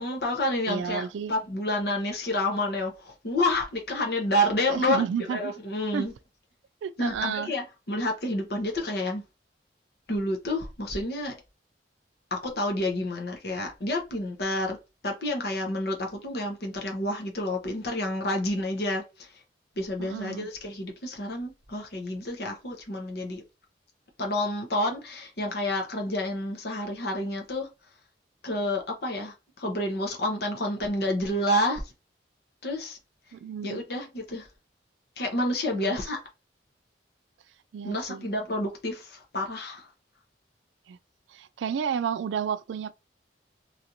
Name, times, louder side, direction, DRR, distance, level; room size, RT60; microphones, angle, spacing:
voice 1, 0.0-6.1 7.0-9.2 10.1-11.4 12.3-14.8 15.0-19.3 19.8-23.4 24.2-27.7 28.4-31.8 32.6-33.0 33.6-34.5 35.2-36.2 37.8-39.9, left 1 dB, 60° left, 0.9 m, -29 dB
voice 2, 0.7-1.3 4.7-5.5 5.9-6.1 6.8-7.5 20.0-20.5 33.3-33.8 35.7-36.0 37.7-38.3 40.9-41.0 41.3-42.9, right 7 dB, 85° right, 0.3 m, -31 dB
3.2 x 2.8 x 2.6 m
head